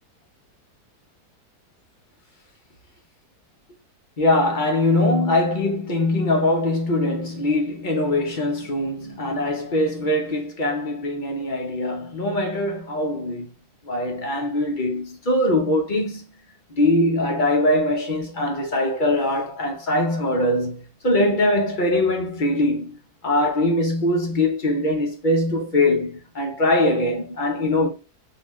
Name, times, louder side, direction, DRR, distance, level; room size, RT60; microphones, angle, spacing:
voice 1, 4.2-13.5 13.8-16.2 16.7-27.9, left 1 dB, 35° left, 0.9 m, -22 dB
3.9 x 2.8 x 3.0 m
omnidirectional pair, 1.7 m